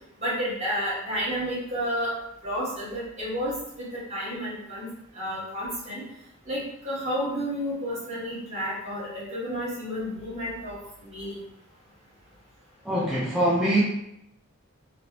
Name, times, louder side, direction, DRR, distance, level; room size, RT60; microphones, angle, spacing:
voice 1, 0.2-2.1 2.4-4.9 5.1-6.0 6.5-10.8 11.0-11.4, equal, 30° right, -8 dB, 1.3 m, -31 dB
voice 2, 12.8-13.8, right 1 dB, 5° right, -8 dB, 0.4 m, -23 dB
3.2 x 2.4 x 2.9 m, 0.81 s
head